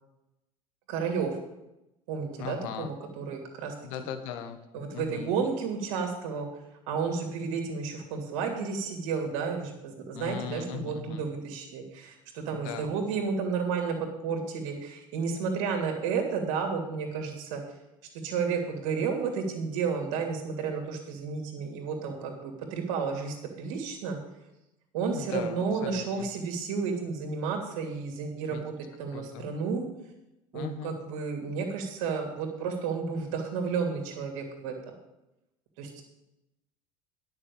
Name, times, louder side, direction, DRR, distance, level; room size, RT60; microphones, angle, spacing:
voice 1, 0.9-1.4 2.1-3.7 4.7-6.5 6.9-14.0 14.2-17.6 18.2-24.2 24.9-28.7 29.0-29.8 30.5-34.9 35.8-36.0, right 5 dB, 65° right, 3 dB, 2.8 m, -32 dB
voice 2, 2.4-2.9 3.8-5.3 10.1-11.2 12.5-12.9 25.1-26.3 28.5-28.7 29.1-29.5 30.5-31.0, left 8 dB, 65° left, 8 dB, 1.4 m, -39 dB
10.0 x 6.6 x 8.6 m, 0.91 s
hypercardioid pair, 70°, 18 cm